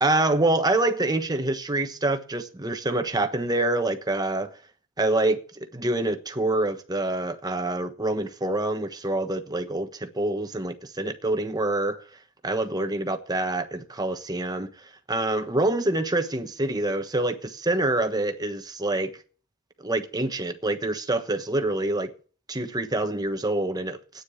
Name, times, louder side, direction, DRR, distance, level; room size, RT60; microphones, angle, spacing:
voice 1, 0.0-4.5 5.0-12.0 12.4-19.1 19.8-22.1 22.5-24.2, right 2 dB, 15° right, 1.2 m, -26 dB
9.7 x 9.5 x 8.3 m
head